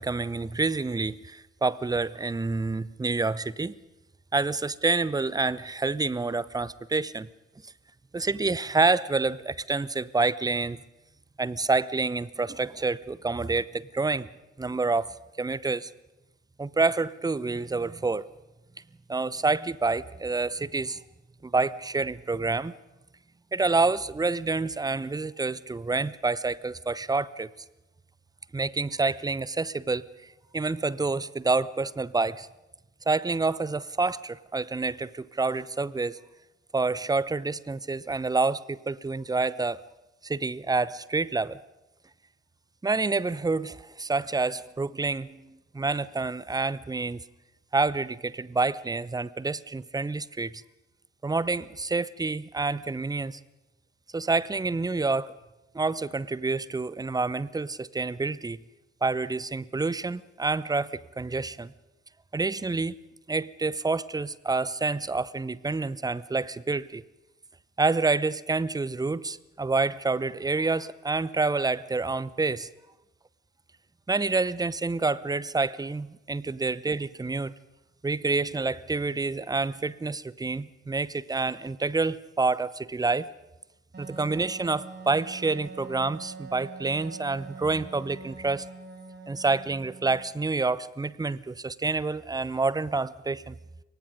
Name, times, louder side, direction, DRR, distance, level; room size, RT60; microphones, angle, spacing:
voice 1, 0.0-3.7 4.3-7.3 8.1-10.8 11.4-14.3 14.6-15.9 16.6-18.3 19.1-21.0 21.4-22.7 23.5-27.5 28.5-30.1 30.5-32.5 33.1-36.2 36.7-39.8 40.2-41.6 42.8-47.2 47.7-50.6 51.2-53.4 54.1-55.3 55.7-58.6 59.0-61.7 62.3-63.0 63.3-67.0 67.8-72.7 74.1-77.5 78.0-83.3 84.0-88.7 89.3-93.6, right 3 dB, 10° right, 20 dB, 0.8 m, -28 dB
Wind instrument woodwind instrument, 83.9-90.4, right 4 dB, 25° right, 6.5 m, -43 dB
28.5 x 23.5 x 5.3 m, 1.0 s
figure-of-eight pair, 45°, 36 cm